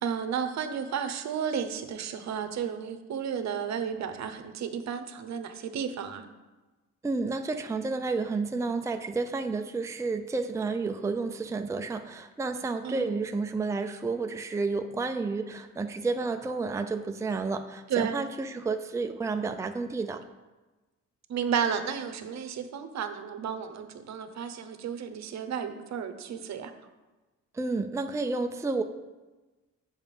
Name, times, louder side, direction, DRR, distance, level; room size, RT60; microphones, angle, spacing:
voice 1, 0.0-6.3 12.8-13.2 17.9-18.2 21.3-26.7, right 7 dB, 65° right, 8 dB, 0.9 m, -32 dB
voice 2, 7.0-20.2 27.5-28.8, right 3 dB, 10° right, 6 dB, 0.5 m, -31 dB
7.2 x 5.7 x 5.4 m, 1.2 s
cardioid pair, 90°, 30 cm